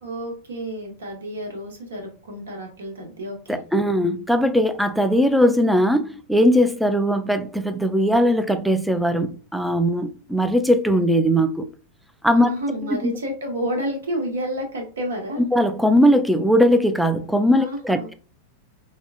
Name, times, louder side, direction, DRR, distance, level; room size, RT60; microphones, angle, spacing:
voice 1, 0.0-3.6 12.3-15.4 17.5-18.1, right 1 dB, 65° right, 1.1 m, -30 dB
voice 2, 3.5-11.7 12.2-12.5 12.9-13.1 15.5-18.1, equal, ahead, 0.4 m, -19 dB
4.7 x 2.2 x 2.5 m
figure-of-eight pair, 90°, 0 cm